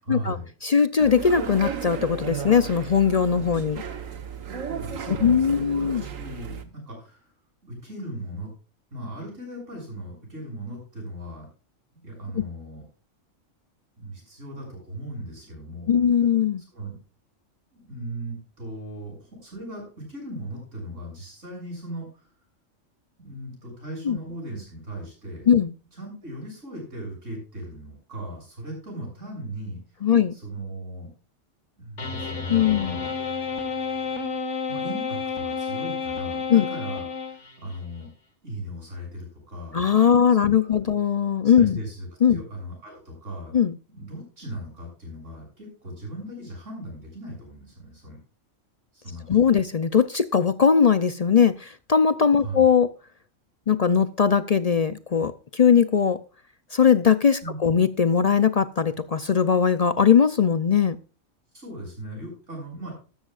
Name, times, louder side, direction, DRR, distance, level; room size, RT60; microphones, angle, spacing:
voice 1, 0.0-0.4 3.5-3.6 4.5-7.3 7.6-8.5 8.9-11.5 11.9-12.8 14.0-16.0 16.7-17.0 17.7-22.3 23.2-25.5 25.9-29.8 30.3-31.1 31.8-33.1 34.7-38.1 38.4-39.8 40.6-40.8 41.4-43.5 43.9-48.2 48.9-49.5 52.3-52.7 57.4-57.6 61.5-62.9, right 1 dB, 70° right, -1 dB, 8.0 m, -38 dB
voice 2, 0.6-3.8 5.1-6.0 12.3-12.4 15.9-16.6 24.0-24.2 25.5-25.7 30.0-30.3 32.5-33.1 36.5-36.7 39.7-41.8 42.2-42.4 43.5-43.8 49.3-52.9 53.7-56.2 56.7-61.0, left 7 dB, 50° left, 13 dB, 0.5 m, -20 dB
sound 1, 1.0-6.6, right 7 dB, 85° right, 1.6 m, -34 dB
sound 2, 32.0-37.8, left 5 dB, 70° left, 2.0 m, -31 dB
13.0 x 13.0 x 2.4 m, 0.35 s
omnidirectional pair, 1.3 m